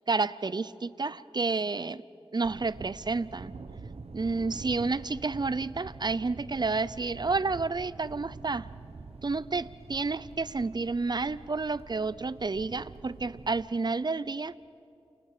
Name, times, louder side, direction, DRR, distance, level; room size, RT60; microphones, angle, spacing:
voice 1, 0.1-2.0 2.3-3.5 4.1-8.7 9.2-14.5, right 3 dB, 45° right, 18 dB, 0.7 m, -30 dB
Thunder, 2.4-13.6, right 4 dB, 75° right, 1.2 m, -46 dB
29.0 x 28.0 x 5.1 m, 2.6 s
cardioid pair, 50°, 11 cm